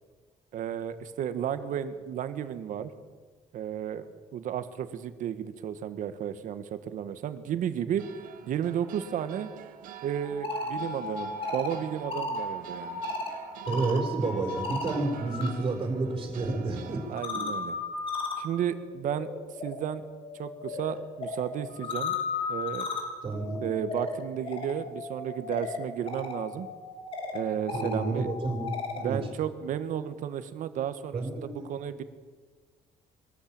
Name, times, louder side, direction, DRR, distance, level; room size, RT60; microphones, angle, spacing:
voice 1, 0.5-2.9 3.5-4.1 4.3-8.0 8.5-9.5 10.0-13.0 17.1-17.8 18.4-19.3 19.6-20.0 20.4-22.2 22.5-22.9 23.6-26.7 27.3-28.3 29.0-32.0, right 9 dB, 70° right, 11 dB, 1.5 m, -33 dB
sound 1, 8.0-17.3, right 9 dB, 85° right, 1.8 m, -46 dB
sound 2, 10.2-15.5 15.8-29.1, left 3 dB, 40° left, 3.4 m, -36 dB
voice 2, 13.7-17.0 23.2-23.7 27.7-29.2 31.1-31.7, right 3 dB, 35° right, 2 dB, 4.3 m, -30 dB
22.5 x 13.5 x 8.8 m, 1.5 s
cardioid pair, 125°, 14 cm